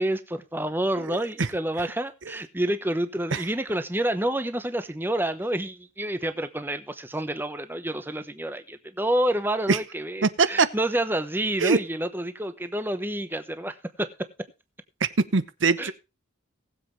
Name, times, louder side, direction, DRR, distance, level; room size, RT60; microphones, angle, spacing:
voice 1, 0.0-14.1 15.8-15.9, right 1 dB, 10° right, 10 dB, 1.0 m, -28 dB
voice 2, 1.1-1.5 3.3-3.4 9.7-9.8 10.2-10.7 11.6-11.8 15.0-15.9, right 4 dB, 75° right, 15 dB, 0.9 m, -23 dB
19.5 x 7.7 x 3.2 m, 0.28 s
head